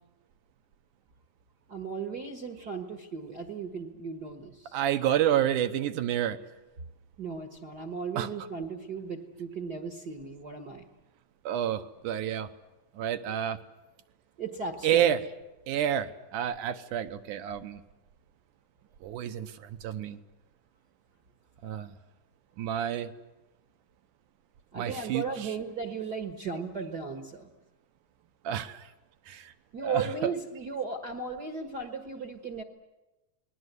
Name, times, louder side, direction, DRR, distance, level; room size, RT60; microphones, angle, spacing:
voice 1, 1.7-4.8 7.2-10.9 14.4-15.1 24.7-27.5 29.7-32.6, right 4 dB, 45° right, 5 dB, 1.4 m, -36 dB
voice 2, 4.7-6.4 8.2-8.3 11.5-12.5 13.0-13.6 14.8-15.3 15.7-17.8 19.0-20.2 21.6-21.9 22.6-23.1 24.8-25.5 28.4-28.9 29.3-29.5 29.8-30.3, right 10 dB, 75° right, 9 dB, 2.5 m, -29 dB
29.0 x 20.5 x 8.2 m, 1.0 s
omnidirectional pair, 3.8 m